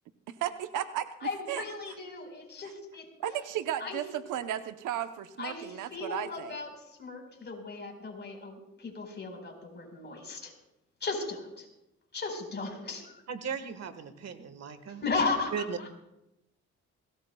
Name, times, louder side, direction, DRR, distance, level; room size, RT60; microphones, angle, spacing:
voice 1, 0.3-1.1 1.5-1.6 3.2-6.5, right 11 dB, 85° right, 9 dB, 0.9 m, -34 dB
voice 2, 1.2-3.1 3.8-4.0 5.4-6.7 7.0-10.5 11.0-11.7 12.1-13.2 15.0-15.5, left 3 dB, 35° left, 2 dB, 4.6 m, -35 dB
voice 3, 13.3-15.0 15.5-15.8, right 6 dB, 60° right, 10 dB, 1.5 m, -37 dB
22.0 x 18.0 x 2.3 m, 0.90 s
cardioid pair, 90°, 30 cm